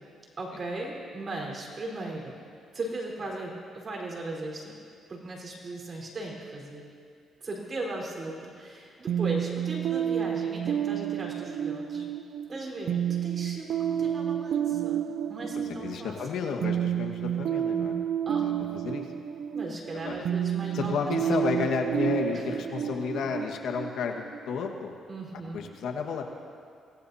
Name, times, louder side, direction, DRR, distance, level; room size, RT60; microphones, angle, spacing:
voice 1, 0.4-2.4 2.7-4.7 5.1-6.8 7.4-12.1 12.5-15.0 15.3-16.4 18.3-18.5 19.5-21.6 22.3-22.5 25.1-25.7, right 2 dB, 40° right, -1 dB, 4.3 m, -37 dB
sound 1, 9.1-24.7, right 9 dB, 70° right, 0.6 m, -30 dB
voice 2, 15.5-18.0 18.4-19.1 19.9-20.3 20.7-24.9 25.5-26.2, left 5 dB, 75° left, 3 dB, 1.5 m, -32 dB
25.5 x 17.5 x 2.8 m, 2.3 s
cardioid pair, 90°, 0 cm